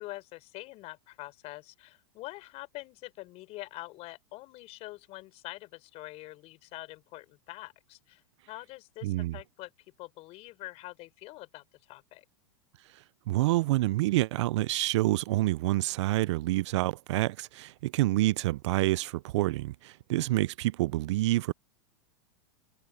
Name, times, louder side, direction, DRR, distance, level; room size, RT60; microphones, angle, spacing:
voice 1, 0.0-9.7 10.0-12.2, left 19 dB, 40° left, 6.6 m, -45 dB
voice 2, 9.0-9.4 13.3-21.5, right 17 dB, 70° right, 0.4 m, -27 dB
open air
supercardioid pair, 145°, 16 cm